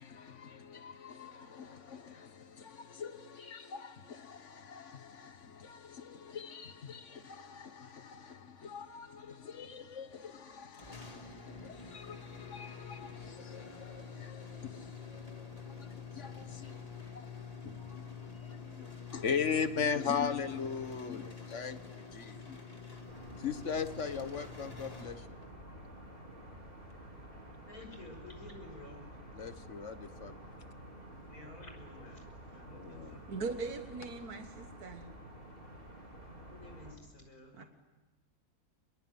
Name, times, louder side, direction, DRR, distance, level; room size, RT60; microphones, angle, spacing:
voice 1, 0.0-17.3 17.6-22.6 23.4-25.4 29.4-30.5 32.7-33.2, left 6 dB, 55° left, 1.7 m, -40 dB
sound 1, 10.7-25.7, left 5 dB, 25° left, 2.4 m, -47 dB
sound 2, 23.1-37.0, right 1 dB, 35° right, 4.8 m, -50 dB
voice 2, 27.7-29.1 29.4-29.5 30.0-34.3 36.5-37.7, left 2 dB, 75° left, 6.3 m, -54 dB
voice 3, 33.3-35.1 37.6-37.7, right 4 dB, 85° right, 1.9 m, -40 dB
27.0 x 22.0 x 9.6 m
omnidirectional pair, 1.6 m